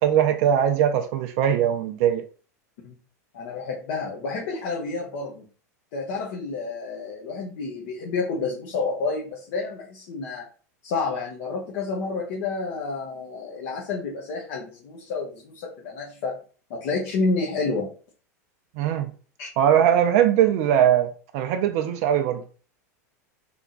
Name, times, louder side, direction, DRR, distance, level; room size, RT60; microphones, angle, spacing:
voice 1, 0.0-2.2 18.8-19.1 19.6-22.4, right 9 dB, 55° right, 0.5 m, -21 dB
voice 2, 3.3-5.4 5.9-10.4 10.8-16.4 16.7-17.9 19.4-19.5, left 4 dB, 60° left, 1.1 m, -29 dB
3.5 x 2.9 x 3.8 m
hypercardioid pair, 100°, 9 cm